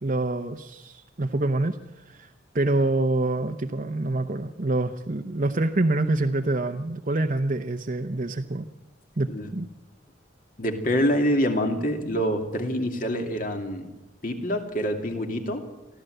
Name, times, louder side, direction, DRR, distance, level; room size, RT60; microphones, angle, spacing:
voice 1, 0.0-2.3 2.5-8.7 9.2-9.7, right 2 dB, 45° right, 4 dB, 0.9 m, -26 dB
voice 2, 10.6-13.9 14.2-15.6, equal, 45° left, 4 dB, 2.7 m, -26 dB
23.5 x 15.0 x 7.9 m, 1.0 s
head